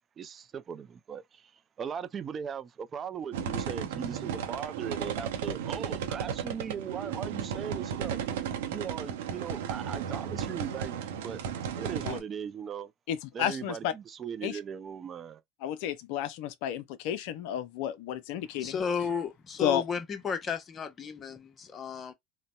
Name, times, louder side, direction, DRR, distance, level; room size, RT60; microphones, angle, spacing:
voice 1, 0.2-1.5 1.8-8.2 8.7-11.4 11.8-12.9 13.3-15.4, right 7 dB, 35° right, 0.4 m, -38 dB
sound 1, 3.3-12.2, right 8 dB, 70° right, 0.7 m, -34 dB
voice 2, 13.1-13.9 14.4-14.6 15.6-18.8 19.6-19.8, left 10 dB, 65° left, 0.4 m, -32 dB
voice 3, 18.5-22.1, left 6 dB, 30° left, 0.8 m, -33 dB
3.8 x 2.1 x 2.2 m
hypercardioid pair, 80°, 0 cm